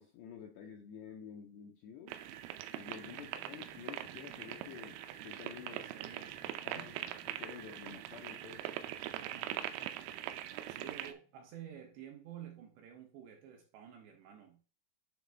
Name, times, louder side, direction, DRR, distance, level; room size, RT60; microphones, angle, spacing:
voice 1, 0.0-2.1 2.7-5.8 6.6-6.9 7.3-8.7 9.5-9.6, left 8 dB, 80° left, 2.5 m, -50 dB
sound 1, 2.1-11.1, right 12 dB, 90° right, 3.3 m, -42 dB
sound 2, 2.9-11.4, equal, 50° right, 1.3 m, -66 dB
voice 2, 5.7-6.4 6.6-6.9 9.2-9.6 10.7-14.6, right 9 dB, 70° right, 2.9 m, -51 dB
10.5 x 4.0 x 3.4 m
omnidirectional pair, 5.8 m